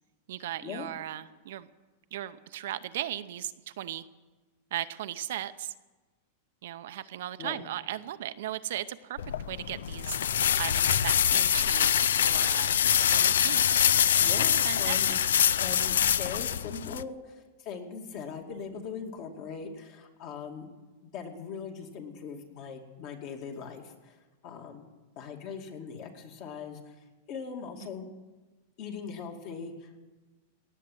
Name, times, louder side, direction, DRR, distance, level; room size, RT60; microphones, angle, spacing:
voice 1, 0.3-1.7 2.1-4.1 4.7-5.7 6.6-9.2 9.5-10.2 10.6-11.9 12.2-12.8 13.1-13.7 14.6-15.0, right 12 dB, 70° right, 11 dB, 0.7 m, -37 dB
sound 1, 9.2-17.0, left 9 dB, 90° left, 0.4 m, -25 dB
voice 2, 14.2-15.2 15.6-20.7 21.1-24.2 24.4-24.9 25.2-27.0 27.3-28.1 28.8-30.1, left 6 dB, 45° left, 3 dB, 2.4 m, -40 dB
18.0 x 7.5 x 9.3 m, 1.2 s
supercardioid pair, 140°, 0 cm